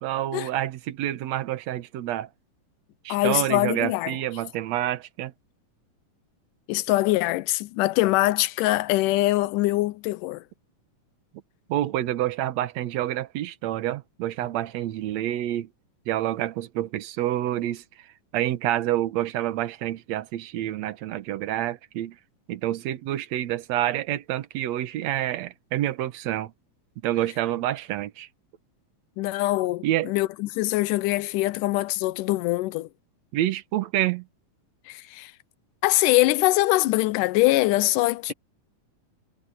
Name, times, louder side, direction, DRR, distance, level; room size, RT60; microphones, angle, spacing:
voice 1, 0.0-2.3 3.0-5.3 11.7-15.7 16.1-18.1 18.3-22.2 22.5-26.5 27.0-28.3 29.8-30.1 33.3-34.2, right 13 dB, 65° right, 2.0 m, -28 dB
voice 2, 3.1-4.2 6.7-10.4 29.2-32.9 34.9-35.3 35.8-38.3, left 18 dB, 80° left, 2.2 m, -23 dB
omnidirectional pair, 3.8 m